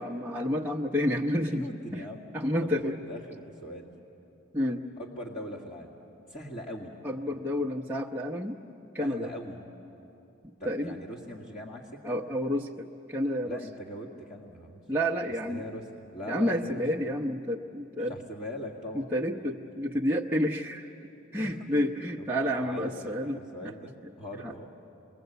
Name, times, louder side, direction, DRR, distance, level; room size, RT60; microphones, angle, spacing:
voice 1, 0.0-1.7 1.9-2.0 2.3-3.0 4.5-4.8 7.0-8.6 8.9-9.3 10.6-10.9 12.0-13.6 14.9-15.6 16.3-18.1 18.9-20.9 21.3-23.7 24.4-24.5, equal, 10° right, -4 dB, 0.8 m, -30 dB
voice 2, 1.5-2.3 2.6-3.9 5.0-6.0 6.3-6.9 9.0-9.6 10.6-12.2 13.4-14.8 15.5-16.8 18.0-19.1 21.4-21.6 22.6-24.7, equal, 35° left, -5 dB, 2.1 m, -41 dB
28.0 x 22.0 x 8.1 m, 2.9 s
head